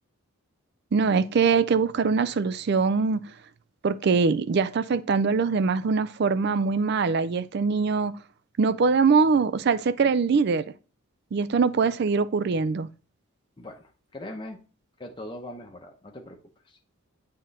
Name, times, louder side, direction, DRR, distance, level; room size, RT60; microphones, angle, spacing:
voice 1, 0.9-3.2 3.8-8.1 8.6-10.7 11.3-12.9, right 5 dB, 50° right, 0.4 m, -23 dB
voice 2, 13.6-14.6 15.0-16.4 16.7-16.8, left 1 dB, 20° left, 0.7 m, -40 dB
7.7 x 3.7 x 4.0 m
head